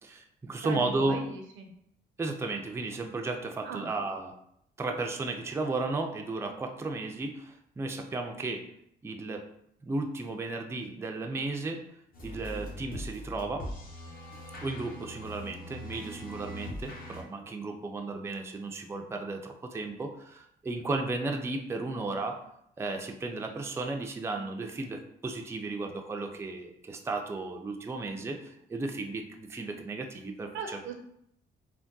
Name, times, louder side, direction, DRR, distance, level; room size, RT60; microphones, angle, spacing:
voice 1, 0.0-1.2 2.2-4.3 4.8-8.7 9.0-9.5 9.8-11.8 12.2-13.7 14.6-22.4 22.8-30.9, right 3 dB, 15° right, 3 dB, 0.4 m, -34 dB
voice 2, 0.6-1.7 3.6-3.9 28.2-28.3 30.5-30.9, right 4 dB, 75° right, 4 dB, 0.6 m, -38 dB
sound 1, 12.1-17.2, left 1 dB, 45° left, 0.9 m, -42 dB
3.4 x 2.2 x 2.6 m, 0.73 s
cardioid pair, 90°, 20 cm